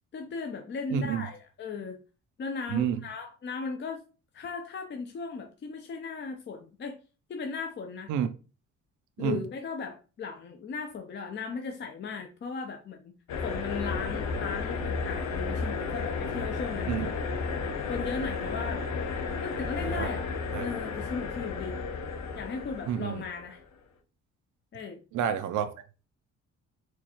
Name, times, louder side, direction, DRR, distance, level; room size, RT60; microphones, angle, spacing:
voice 1, 0.1-2.0 2.4-4.0 4.3-7.0 7.3-8.1 9.2-13.2 13.4-17.3 17.9-18.9 19.4-20.3 20.6-21.8 22.3-23.6 24.7-25.0, left 5 dB, 40° left, 0.5 m, -37 dB
voice 2, 0.9-1.3 2.7-3.0 8.1-8.3 9.2-9.4 16.9-17.1 19.8-20.1 20.5-20.7 22.9-23.2 25.1-25.7, right 9 dB, 80° right, 0.5 m, -29 dB
sound 1, 13.3-23.6, left 4 dB, 70° left, 0.7 m, -33 dB
4.4 x 2.3 x 2.9 m
cardioid pair, 90°, 30 cm